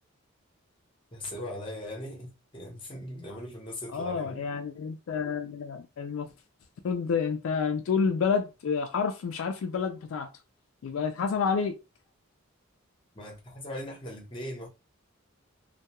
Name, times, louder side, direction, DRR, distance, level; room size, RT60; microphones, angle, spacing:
voice 1, 1.1-4.4 13.1-14.7, left 1 dB, 25° left, 0.9 m, -39 dB
voice 2, 3.9-6.3 6.8-10.3 10.8-11.7, left 5 dB, 70° left, 0.3 m, -29 dB
2.2 x 2.2 x 2.9 m
head